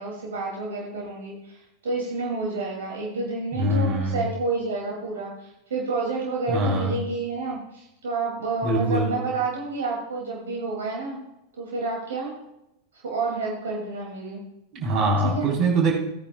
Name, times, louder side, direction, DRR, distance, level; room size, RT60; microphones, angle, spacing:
voice 1, 0.0-11.2 11.6-12.3 12.9-14.4 15.2-15.5, right 3 dB, 65° right, -2 dB, 2.5 m, -29 dB
voice 2, 3.5-4.2 6.5-6.9 8.6-9.1 14.7-15.9, right 2 dB, 35° right, -2 dB, 3.9 m, -23 dB
17.0 x 9.8 x 2.3 m, 0.86 s
figure-of-eight pair, 90°, 0 cm